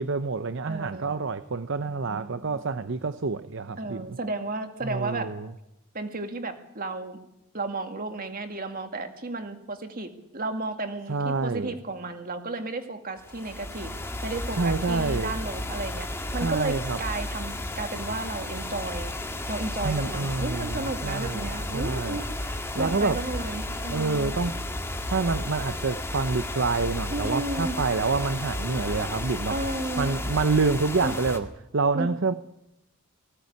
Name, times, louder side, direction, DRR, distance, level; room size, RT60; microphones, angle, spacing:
voice 1, 0.0-4.0 4.8-5.5 11.1-11.7 14.6-15.3 16.4-17.0 19.8-22.2 22.7-23.2 23.9-24.7 25.0-29.6 30.0-31.5 31.7-32.3, right 4 dB, 55° right, 0.7 m, -27 dB
voice 2, 0.7-1.1 1.8-2.6 3.8-5.3 5.9-7.2 7.5-13.9 14.2-19.1 19.5-24.4 27.1-27.8 29.5-30.1 31.0-31.1 31.9-32.1, right 2 dB, 40° right, 2.1 m, -33 dB
sound 1, 13.2-31.4, left 1 dB, 10° left, 1.8 m, -33 dB
19.5 x 16.5 x 9.6 m
head